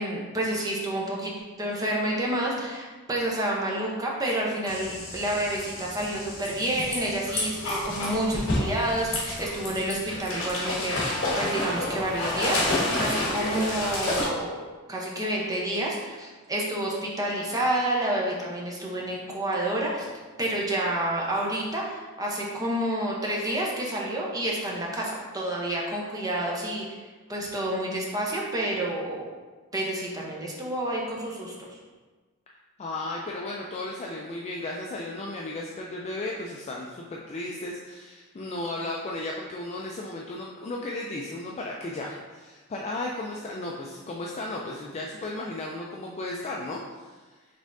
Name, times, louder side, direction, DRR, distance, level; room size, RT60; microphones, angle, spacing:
voice 1, 0.0-1.3 1.6-11.0 11.4-14.6 14.9-20.1 20.4-27.0 27.3-29.3 29.7-31.8, right 1 dB, 15° right, -3 dB, 0.7 m, -29 dB
sound 1, 4.7-14.3, left 2 dB, 60° left, 1.3 m, -30 dB
voice 2, 32.8-47.2, left 2 dB, 30° left, -2 dB, 0.3 m, -35 dB
5.2 x 3.5 x 2.6 m, 1.3 s
head